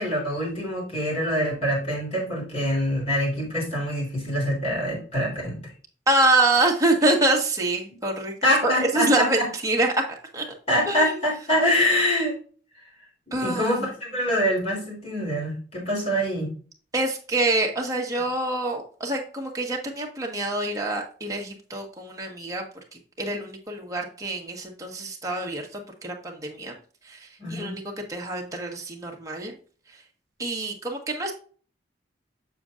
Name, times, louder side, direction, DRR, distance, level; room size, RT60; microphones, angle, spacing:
voice 1, 0.0-5.6 8.4-9.5 10.7-12.4 13.4-16.5 27.4-27.8, equal, 35° left, -4 dB, 3.5 m, -25 dB
voice 2, 6.1-8.3 8.6-9.4 9.6-9.9 10.3-10.4 10.9-11.2 13.3-13.8 16.9-22.6 23.2-26.8 27.0-27.8 28.1-29.5 30.4-31.3, right 2 dB, 20° right, 0 dB, 1.4 m, -25 dB
7.0 x 6.8 x 2.5 m, 0.41 s
head